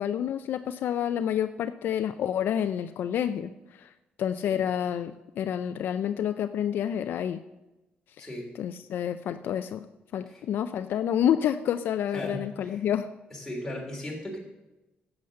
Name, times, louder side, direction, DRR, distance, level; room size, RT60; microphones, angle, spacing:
voice 1, 0.0-3.5 3.8-3.9 4.2-7.4 8.2-8.3 8.6-9.9 10.1-13.1, left 9 dB, 65° left, 10 dB, 0.4 m, -28 dB
voice 2, 8.2-8.5 10.3-10.4 12.1-12.9 13.3-14.4, left 1 dB, 10° left, -2 dB, 3.2 m, -37 dB
11.5 x 7.9 x 6.5 m, 1.0 s
cardioid pair, 140°, 4 cm